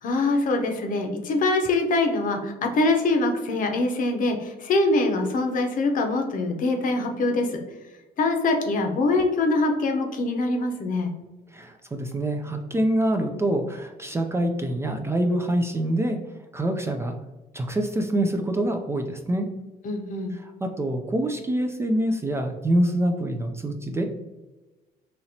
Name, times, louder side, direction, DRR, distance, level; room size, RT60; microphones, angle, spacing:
voice 1, 0.0-7.6 8.2-11.1 19.8-20.3, left 2 dB, 50° left, 4 dB, 0.7 m, -24 dB
voice 2, 11.5-16.2 16.5-17.1 17.5-19.5 20.3-24.0, right 1 dB, 15° right, 4 dB, 0.3 m, -25 dB
4.3 x 2.9 x 2.7 m, 1.1 s
cardioid pair, 110°, 17 cm